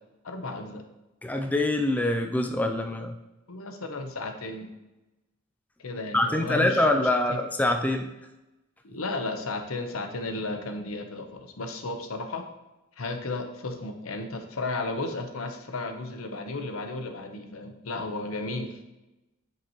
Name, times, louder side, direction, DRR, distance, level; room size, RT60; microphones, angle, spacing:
voice 1, 0.2-0.8 3.5-4.7 5.8-7.4 8.8-12.5 13.0-18.8, left 2 dB, 85° left, 6 dB, 0.9 m, -34 dB
voice 2, 1.2-3.1 6.1-8.1, left 1 dB, 5° left, 5 dB, 0.3 m, -25 dB
8.2 x 6.0 x 3.0 m, 1.0 s
head